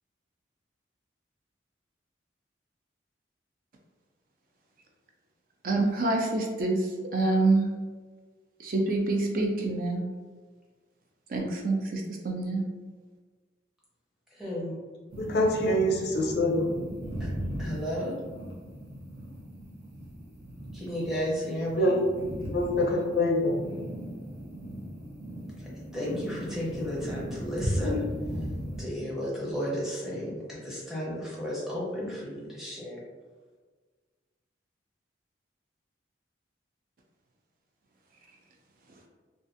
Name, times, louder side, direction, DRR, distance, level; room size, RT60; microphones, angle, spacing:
voice 1, 5.6-6.8 7.1-7.7 8.6-10.0 11.3-12.6, right 2 dB, 50° right, 1 dB, 0.4 m, -26 dB
voice 2, 14.3-14.7 17.2-17.3 17.6-18.1 20.7-21.9 25.6-28.0 28.8-33.0, equal, ahead, -7 dB, 0.6 m, -33 dB
sound 1, 15.1-28.8, equal, 70° right, 0.8 m, -37 dB
voice 3, 15.2-16.7 21.8-22.0 22.5-23.6, left 1 dB, 60° left, -1 dB, 0.5 m, -25 dB
2.5 x 2.3 x 2.5 m, 1.4 s
head